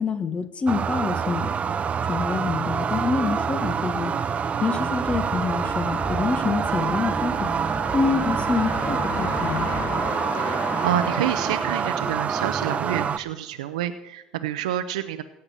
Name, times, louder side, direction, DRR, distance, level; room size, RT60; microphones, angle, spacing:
voice 1, 0.0-1.5 2.1-4.1 4.6-7.5 7.9-9.7, left 4 dB, 35° left, 10 dB, 1.6 m, -26 dB
sound 1, 0.7-13.2, right 6 dB, 40° right, 0.7 m, -26 dB
sound 2, 3.4-13.6, left 7 dB, 55° left, 1.4 m, -37 dB
sound 3, 5.0-10.1, right 2 dB, 15° right, 2.6 m, -36 dB
voice 2, 10.3-15.2, right 11 dB, 90° right, 9 dB, 0.6 m, -28 dB
17.0 x 5.8 x 8.8 m, 0.91 s
hypercardioid pair, 70°, 4 cm